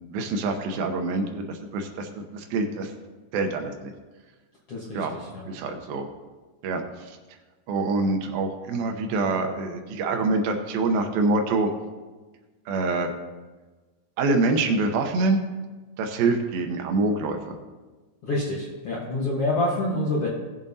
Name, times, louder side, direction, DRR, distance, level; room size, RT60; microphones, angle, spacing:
voice 1, 0.1-2.9 3.3-3.9 4.9-5.1 5.5-6.1 6.6-7.2 7.7-11.7 12.7-13.1 14.2-15.4 16.0-17.6, right 3 dB, 75° right, 4 dB, 2.4 m, -25 dB
voice 2, 4.7-5.5 18.2-20.3, left 2 dB, 90° left, -4 dB, 1.3 m, -27 dB
19.0 x 7.3 x 2.8 m, 1.3 s
omnidirectional pair, 4.8 m